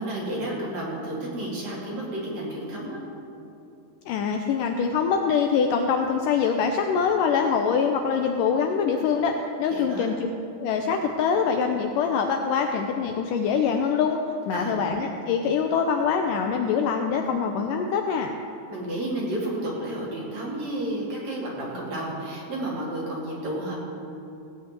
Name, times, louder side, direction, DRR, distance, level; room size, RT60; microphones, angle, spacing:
voice 1, 0.0-3.0 9.7-10.1 14.5-14.9 18.7-23.8, right 1 dB, 50° right, -5 dB, 3.7 m, -31 dB
voice 2, 4.1-10.3 10.6-14.2 14.5-18.3, left 6 dB, 80° left, 4 dB, 2.0 m, -24 dB
16.5 x 5.6 x 8.9 m, 2.7 s
omnidirectional pair, 4.3 m